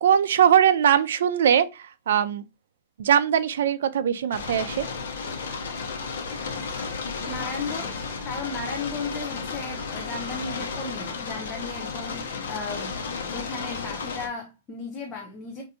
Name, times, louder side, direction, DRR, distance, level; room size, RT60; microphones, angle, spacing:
voice 1, 0.0-2.4 3.0-4.9, right 9 dB, 70° right, 0.4 m, -21 dB
sound 1, 4.3-14.3, left 4 dB, 75° left, 0.8 m, -33 dB
voice 2, 7.3-13.0 13.3-15.6, left 4 dB, 15° left, 0.5 m, -35 dB
4.4 x 2.6 x 2.7 m
supercardioid pair, 175°, 0 cm